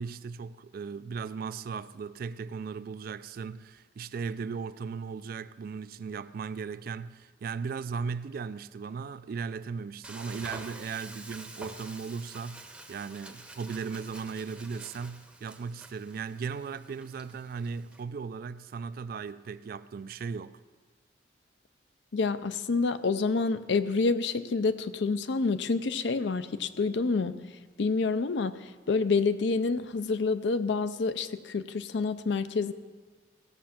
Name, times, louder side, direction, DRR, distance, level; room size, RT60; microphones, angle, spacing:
voice 1, 0.0-20.6, right 5 dB, 50° right, 0.3 m, -37 dB
Frying (food), 10.0-18.0, right 2 dB, 5° right, 0.7 m, -48 dB
voice 2, 22.1-32.7, left 4 dB, 65° left, 0.5 m, -28 dB
15.5 x 6.3 x 5.9 m
head